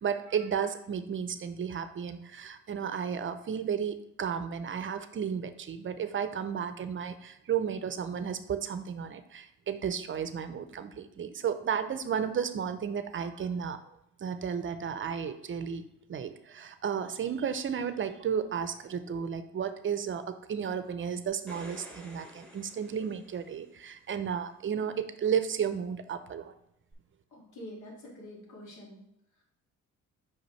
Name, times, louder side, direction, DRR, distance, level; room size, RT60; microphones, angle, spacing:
voice 1, 0.0-13.8 14.2-15.8 16.1-26.5, right 7 dB, 40° right, 10 dB, 0.6 m, -33 dB
sound 1, 21.3-23.8 26.9-27.0, right 1 dB, 5° left, 1.4 m, -50 dB
voice 2, 27.3-29.0 29.3-29.4, left 1 dB, 75° left, -2 dB, 2.2 m, -47 dB
5.7 x 5.2 x 3.2 m, 0.80 s
cardioid pair, 90°, 30 cm